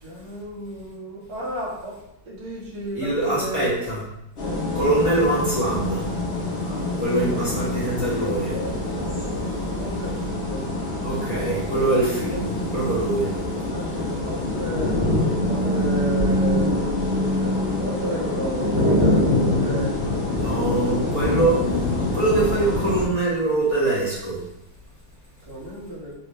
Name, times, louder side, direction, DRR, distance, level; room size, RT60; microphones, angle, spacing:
voice 1, 0.0-2.0 2.3-3.7 7.2-7.4 9.8-10.7 13.7-15.0 15.4-20.0 20.4-20.8 25.5-26.1, equal, 60° right, -3 dB, 1.2 m, -33 dB
voice 2, 2.9-4.0 4.7-6.1 6.6-6.7 7.0-8.6 11.0-13.3 20.3-24.4, right 2 dB, 10° right, -10 dB, 0.9 m, -24 dB
sound 1, 4.4-23.1, left 1 dB, 90° left, 0.5 m, -25 dB
3.2 x 2.7 x 3.1 m, 0.82 s
omnidirectional pair, 2.2 m